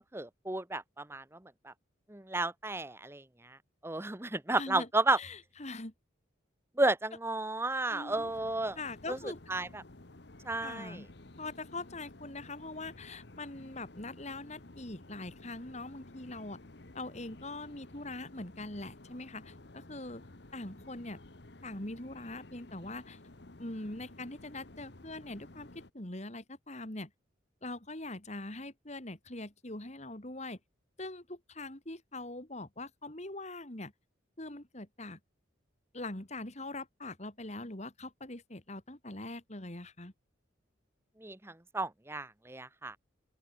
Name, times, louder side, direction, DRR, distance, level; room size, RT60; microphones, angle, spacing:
voice 1, 0.1-1.7 2.1-3.6 3.8-5.2 6.8-8.8 9.1-9.2 9.5-9.8 10.4-11.0 41.2-43.0, right 2 dB, 15° right, 1.0 m, -33 dB
voice 2, 4.6-4.9 5.2-5.9 7.9-8.3 8.8-9.4 10.6-11.1 11.4-16.6 16.9-20.2 20.5-21.2 21.6-23.2 23.6-27.1 27.6-30.6 31.0-33.9 34.4-35.2 35.9-40.1, left 2 dB, 35° left, 2.7 m, -42 dB
sound 1, 8.1-25.9, left 2 dB, 60° left, 1.4 m, -53 dB
open air
head